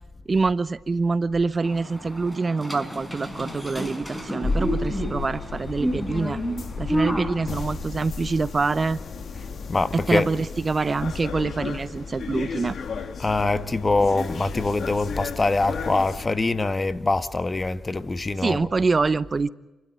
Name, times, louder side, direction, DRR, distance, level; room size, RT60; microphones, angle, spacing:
voice 1, 0.3-6.4 6.8-9.0 9.9-12.8 18.4-19.5, right 4 dB, 40° right, 0.8 m, -25 dB
sound 1, 1.6-7.8, equal, 10° left, 5.1 m, -31 dB
sound 2, 4.4-16.3, left 4 dB, 60° left, 2.0 m, -33 dB
voice 2, 9.7-10.3 13.2-18.6, left 3 dB, 30° left, 1.5 m, -24 dB
29.5 x 13.0 x 9.8 m
supercardioid pair, 50°, 0 cm